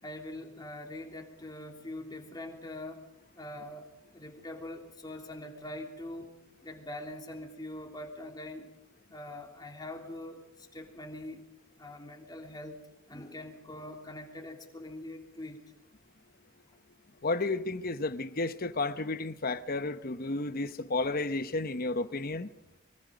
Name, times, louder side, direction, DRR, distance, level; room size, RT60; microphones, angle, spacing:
voice 1, 0.0-3.1 3.3-3.9 4.1-6.3 6.6-8.7 9.1-11.5 11.8-12.8 13.1-15.7, left 1 dB, 20° left, 3.2 m, -43 dB
voice 2, 17.2-22.5, left 3 dB, 45° left, 1.0 m, -32 dB
25.5 x 24.0 x 5.2 m
head